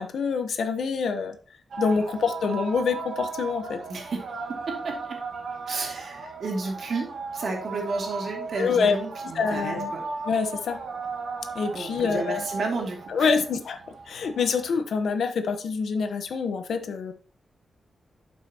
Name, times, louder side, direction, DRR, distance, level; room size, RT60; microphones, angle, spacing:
voice 1, 0.0-1.4 1.8-3.8 8.6-9.0 9.3-9.9 10.2-10.8 11.5-12.4 13.1-13.8 14.1-17.1, left 5 dB, 80° left, 8 dB, 1.0 m, -26 dB
sound 1, 1.7-14.7, right 4 dB, 80° right, 1.5 m, -36 dB
voice 2, 3.9-4.2 4.5-5.2 5.7-10.0 11.7-13.4, right 3 dB, 60° right, 1 dB, 2.6 m, -32 dB
12.0 x 5.7 x 2.9 m, 0.39 s
wide cardioid pair, 150°, 0 cm